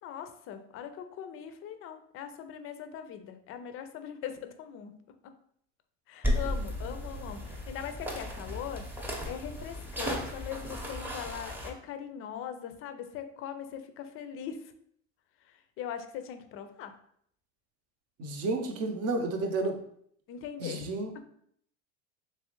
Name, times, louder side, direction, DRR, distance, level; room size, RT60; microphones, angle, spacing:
voice 1, 0.0-5.0 6.1-8.9 9.2-14.7 15.5-16.9 20.3-20.9 21.1-21.2, left 8 dB, 40° left, 9 dB, 0.5 m, -41 dB
sound 1, 6.2-11.7, left 1 dB, 5° right, 0.7 m, -35 dB
voice 2, 18.2-19.8 20.6-21.2, right 2 dB, 45° right, 5 dB, 0.7 m, -31 dB
3.3 x 3.0 x 3.0 m, 0.67 s
supercardioid pair, 110°, 34 cm